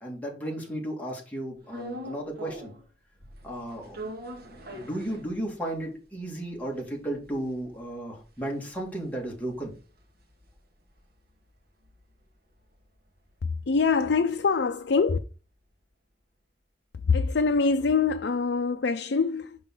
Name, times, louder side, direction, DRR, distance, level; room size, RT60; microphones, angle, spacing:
voice 1, 0.0-2.7 3.4-9.7, right 1 dB, 10° left, 2.1 m, -34 dB
sound 1, 1.7-2.9 3.2-5.8 6.2-6.3 6.5-11.0 11.3-15.3, equal, 55° right, 1.5 m, -44 dB
voice 2, 13.4-15.2 17.0-19.6, left 4 dB, 65° left, 0.5 m, -24 dB
5.6 x 5.4 x 3.8 m
head